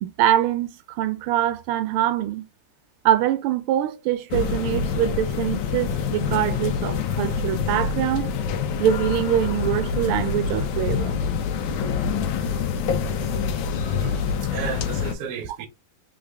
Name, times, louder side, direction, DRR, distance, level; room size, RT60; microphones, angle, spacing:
voice 1, 0.0-2.4 3.0-8.3 8.8-11.2, right 11 dB, 90° right, 1.5 m, -24 dB
sound 1, 4.3-15.1, left 6 dB, 70° left, 1.4 m, -26 dB
voice 2, 13.7-15.7, right 8 dB, 60° right, 1.1 m, -34 dB
3.8 x 3.7 x 3.3 m
omnidirectional pair, 2.3 m